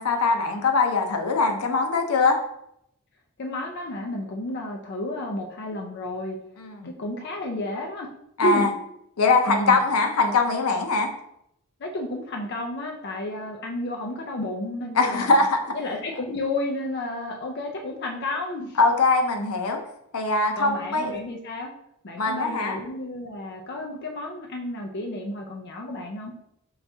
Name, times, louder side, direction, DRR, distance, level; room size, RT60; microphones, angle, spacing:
voice 1, 0.0-2.4 6.6-6.9 8.4-8.7 9.2-11.1 14.9-15.7 18.8-19.8 20.1-21.1 22.2-22.8, left 3 dB, 90° left, 4 dB, 0.7 m, -22 dB
voice 2, 3.4-6.4 6.8-8.1 8.4-8.7 9.5-9.8 11.8-15.4 15.7-18.8 20.6-21.7 22.0-26.3, left 1 dB, 50° left, 1 dB, 0.5 m, -31 dB
5.6 x 3.4 x 2.7 m, 0.77 s
head